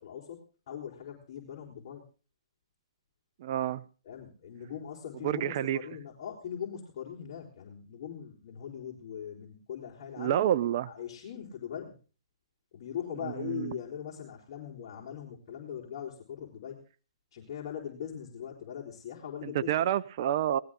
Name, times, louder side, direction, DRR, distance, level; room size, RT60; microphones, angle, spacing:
voice 1, 0.0-2.0 4.0-10.4 10.9-12.0 12.7-16.8 17.3-19.8, left 9 dB, 50° left, -2 dB, 4.5 m, -41 dB
voice 2, 3.4-3.8 5.2-5.8 10.2-10.9 13.4-13.8 19.4-20.6, right 11 dB, 45° right, 13 dB, 0.7 m, -28 dB
19.0 x 14.0 x 3.7 m, 0.36 s
hypercardioid pair, 150°, 3 cm